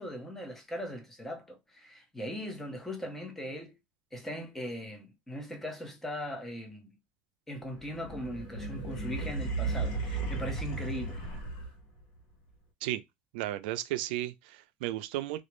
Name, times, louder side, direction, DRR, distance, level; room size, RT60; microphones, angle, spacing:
voice 1, 0.0-3.7 4.1-6.9 7.5-11.3, equal, 5° left, 0.6 m, -39 dB
sound 1, 7.7-12.0, right 3 dB, 80° left, 1.0 m, -35 dB
voice 2, 13.3-15.4, right 14 dB, 90° right, 0.3 m, -34 dB
2.3 x 2.0 x 3.0 m
cardioid pair, 140°, 5 cm